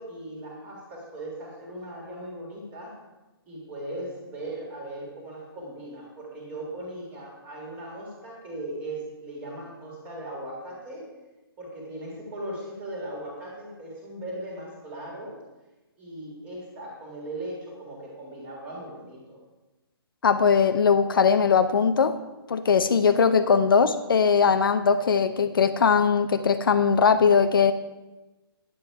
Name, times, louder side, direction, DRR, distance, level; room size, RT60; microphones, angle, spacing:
voice 1, 0.0-3.0 3.5-11.1 11.6-15.4 16.0-19.4, right 1 dB, 10° right, -2 dB, 1.9 m, -38 dB
voice 2, 20.2-22.2 22.5-27.7, left 6 dB, 60° left, 10 dB, 0.6 m, -20 dB
9.9 x 7.8 x 4.6 m, 1.1 s
hypercardioid pair, 175°, 13 cm